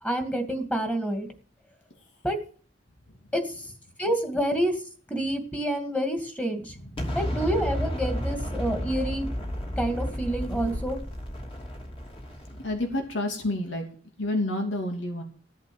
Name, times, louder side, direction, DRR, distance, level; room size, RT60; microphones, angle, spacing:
voice 1, 0.0-1.3 2.2-2.4 3.3-3.7 4.0-4.8 5.1-6.7 7.1-9.3 9.8-11.0, right 1 dB, 10° left, 5 dB, 2.3 m, -28 dB
Explosion, 7.0-13.0, equal, 30° left, 2.9 m, -32 dB
voice 2, 12.5-13.8 14.2-15.2, left 1 dB, 85° left, 3 dB, 2.9 m, -29 dB
15.0 x 8.2 x 7.1 m, 0.43 s
head